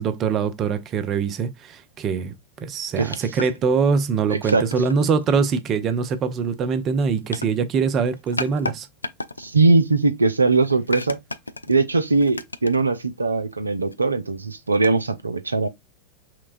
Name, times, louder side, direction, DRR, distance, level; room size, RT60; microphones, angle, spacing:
voice 1, 0.0-2.3 2.6-8.9, right 5 dB, 30° right, 0.6 m, -23 dB
sound 1, 3.1-3.6 4.1-5.3 5.9-6.1 6.8-7.4 8.1-8.7 9.0-9.5 10.5-11.8 12.1-12.9 13.4-13.5 13.7-14.0 14.7-14.9, left 2 dB, 80° left, 0.3 m, -33 dB
voice 2, 4.3-4.6 9.4-11.2 11.7-15.7, right 3 dB, 80° right, 0.4 m, -20 dB
5.8 x 2.2 x 2.5 m
figure-of-eight pair, 90°, 0 cm